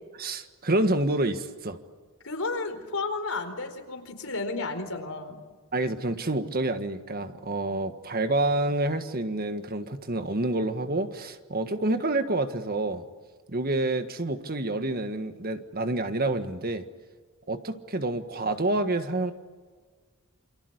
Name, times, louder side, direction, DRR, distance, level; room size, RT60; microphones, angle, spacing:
voice 1, 0.2-1.8 5.7-13.0 13.5-16.9 17.5-19.3, right 2 dB, 40° right, 8 dB, 1.6 m, -28 dB
voice 2, 2.2-5.4, left 3 dB, 70° left, 6 dB, 4.4 m, -32 dB
28.5 x 25.5 x 8.1 m, 1.5 s
head